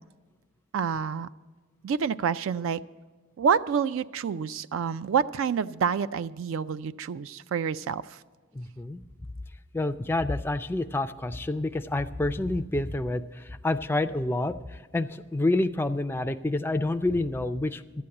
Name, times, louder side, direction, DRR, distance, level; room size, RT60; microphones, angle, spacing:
voice 1, 0.7-1.3 1.8-2.8 3.4-8.2, right 7 dB, 70° right, 15 dB, 0.3 m, -28 dB
voice 2, 8.5-9.0 9.7-18.0, left 2 dB, 10° left, 9 dB, 0.3 m, -28 dB
12.0 x 8.4 x 7.7 m, 1.4 s
head